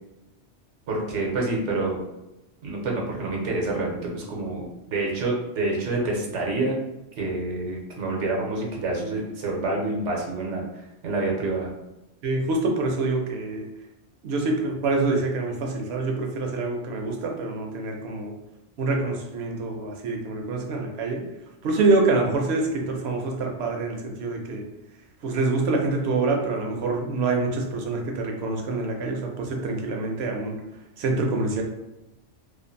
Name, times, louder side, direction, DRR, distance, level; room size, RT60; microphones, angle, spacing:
voice 1, 0.9-2.0 2.6-6.8 7.2-11.7, right 2 dB, 85° right, -2 dB, 1.0 m, -27 dB
voice 2, 12.2-13.6 14.2-18.3 18.8-21.2 21.6-24.7 25.2-30.6 31.0-31.6, right 3 dB, 70° right, 2 dB, 0.8 m, -26 dB
2.5 x 2.4 x 2.5 m, 0.95 s
omnidirectional pair, 1.2 m